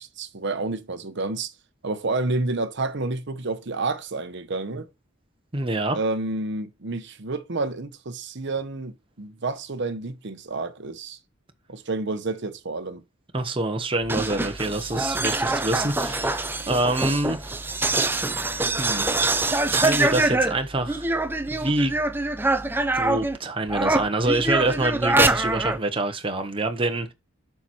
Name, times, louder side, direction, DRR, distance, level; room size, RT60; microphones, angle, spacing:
voice 1, 0.0-1.5 1.8-4.9 5.9-11.2 11.7-13.0, right 3 dB, 60° right, 0.9 m, -29 dB
voice 2, 5.5-6.0 13.3-17.4 18.5-19.0 19.7-21.1 21.5-22.0 22.9-27.1, right 2 dB, 25° right, 1.0 m, -26 dB
sound 1, 14.0-23.4 23.7-25.8, right 2 dB, 10° right, 0.6 m, -24 dB
7.1 x 5.9 x 4.4 m
head